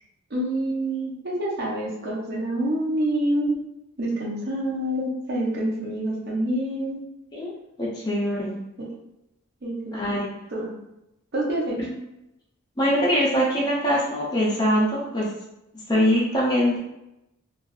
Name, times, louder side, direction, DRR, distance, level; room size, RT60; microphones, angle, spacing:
voice 1, 0.3-3.6 4.0-7.0 8.8-8.9 9.6-10.7 11.3-11.8, right 1 dB, 50° right, -3 dB, 0.7 m, -27 dB
voice 2, 7.8-8.6 9.9-10.4 11.8-11.9 12.8-15.3 15.9-16.8, equal, 20° left, -6 dB, 0.5 m, -23 dB
2.5 x 2.3 x 2.3 m, 0.88 s
head